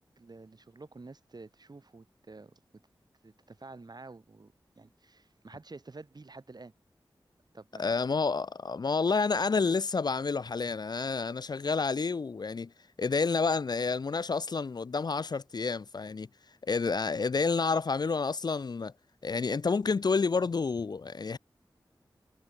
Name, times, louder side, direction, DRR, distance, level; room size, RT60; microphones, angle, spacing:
voice 1, 0.0-2.8 3.2-6.7 7.5-8.0, right 3 dB, 55° right, 6.5 m, -50 dB
voice 2, 7.8-12.7 13.0-16.3 16.6-18.9 19.2-21.4, left 4 dB, 55° left, 0.5 m, -29 dB
cardioid pair, 50°, 9 cm